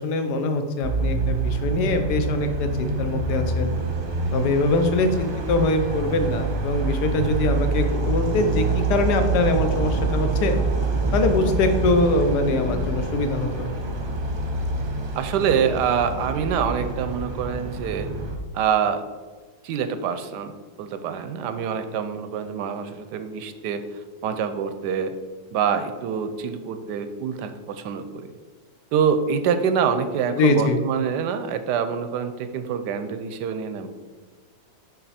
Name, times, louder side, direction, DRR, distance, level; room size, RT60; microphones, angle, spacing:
voice 1, 0.0-3.7 4.3-10.6 11.1-13.9 30.4-30.8, left 2 dB, 65° left, 7 dB, 1.3 m, -23 dB
sound 1, 0.8-18.4, right 3 dB, 40° right, 0.9 m, -26 dB
voice 2, 15.2-18.1 18.5-19.0 19.6-20.5 20.8-23.8 24.2-25.1 25.5-28.3 28.9-33.9, right 7 dB, 75° right, 10 dB, 1.1 m, -25 dB
6.6 x 5.8 x 4.2 m, 1.4 s
omnidirectional pair, 2.0 m